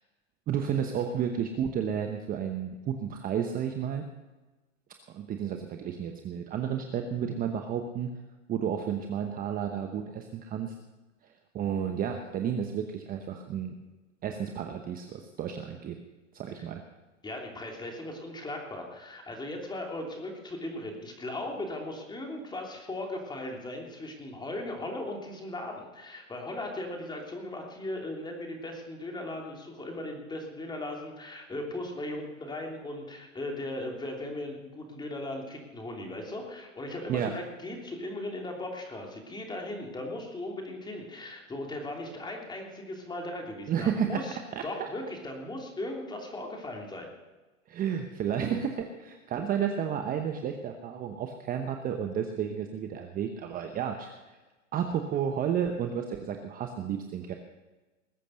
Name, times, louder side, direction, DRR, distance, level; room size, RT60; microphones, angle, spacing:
voice 1, 0.5-4.1 5.1-8.1 8.5-10.7 11.5-13.7 14.2-16.0 16.3-16.8 37.1-37.3 43.7-44.2 44.5-44.9 47.7-54.4 54.7-57.3, right 8 dB, 20° right, 5 dB, 1.0 m, -32 dB
voice 2, 17.2-47.1, left 1 dB, 10° left, 1 dB, 3.0 m, -38 dB
20.5 x 8.4 x 6.4 m, 1.2 s
hypercardioid pair, 125°, 40 cm